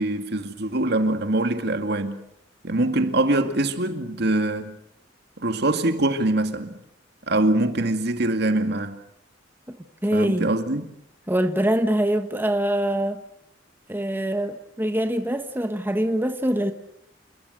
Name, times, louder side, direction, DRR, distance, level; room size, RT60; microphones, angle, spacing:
voice 1, 0.0-2.2 2.6-4.8 5.4-6.8 7.3-9.0 10.1-10.8, right 2 dB, 60° right, 2.2 m, -23 dB
voice 2, 10.0-10.5 11.3-13.2 13.9-16.7, right 1 dB, 10° right, 1.2 m, -24 dB
29.0 x 21.0 x 6.5 m
head